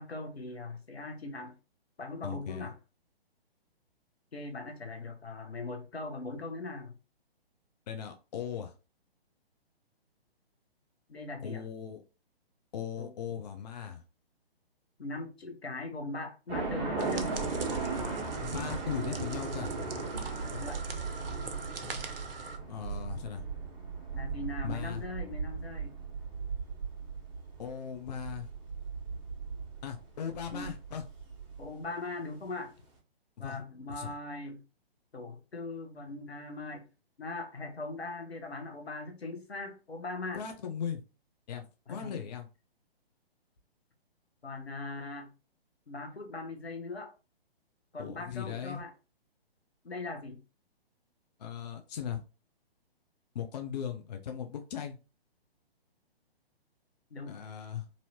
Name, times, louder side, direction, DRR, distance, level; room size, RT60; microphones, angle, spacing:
voice 1, 0.0-1.5 2.0-2.7 4.3-7.0 11.1-11.6 13.0-13.1 15.0-17.3 20.5-20.8 24.1-26.0 30.5-30.7 31.6-32.7 33.4-34.6 35.1-36.8 37.2-40.4 41.9-42.3 44.4-45.3 45.9-47.1 47.9-48.9 49.8-50.4 57.1-57.4, left 2 dB, 80° left, 1.0 m, -40 dB
voice 2, 2.2-2.7 7.9-8.7 11.4-12.0 12.7-14.0 18.5-19.7 22.7-23.5 24.6-25.0 27.6-28.5 29.8-31.0 33.4-33.6 33.9-34.1 40.3-41.0 41.5-42.5 48.0-48.8 51.4-52.2 53.3-55.0 57.3-57.8, left 8 dB, 45° left, 0.5 m, -38 dB
sound 1, 16.5-31.6, right 4 dB, 30° right, 1.1 m, -37 dB
sound 2, 17.0-22.6, right 5 dB, 65° right, 0.7 m, -43 dB
3.1 x 2.6 x 2.7 m
figure-of-eight pair, 130°, 31 cm